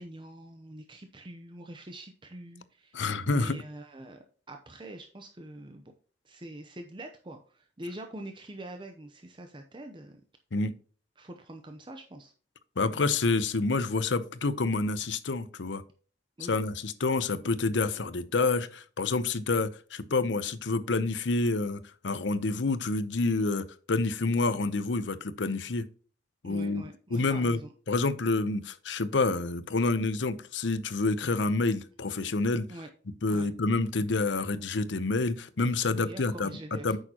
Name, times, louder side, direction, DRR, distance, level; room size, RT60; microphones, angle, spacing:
voice 1, 0.0-5.9 6.2-10.2 11.2-12.3 16.4-16.6 26.4-27.7 32.7-32.9 33.3-33.5 35.9-37.0, right 1 dB, 25° right, 0.7 m, -44 dB
voice 2, 2.9-3.6 10.5-10.7 12.8-15.8 16.5-25.9 26.4-26.8 27.1-27.6 27.9-32.7 33.2-37.0, left 3 dB, 90° left, 0.8 m, -28 dB
8.9 x 6.4 x 2.9 m
head